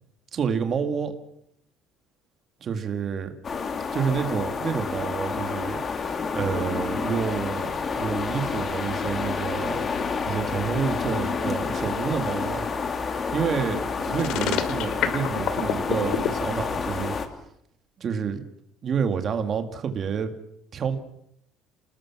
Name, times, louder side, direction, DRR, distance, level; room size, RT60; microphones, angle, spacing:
voice 1, 0.3-1.1 2.6-3.3 3.9-9.8 10.2-12.7 13.2-17.2 18.0-18.4 18.8-20.3 20.7-21.0, right 6 dB, 30° right, 7 dB, 2.0 m, -29 dB
sound 1, 3.4-17.3, left 5 dB, 25° left, 1.9 m, -29 dB
sound 2, 14.2-16.3, left 9 dB, 55° left, 2.4 m, -26 dB
28.5 x 19.5 x 6.1 m, 0.75 s
cardioid pair, 175°, 0 cm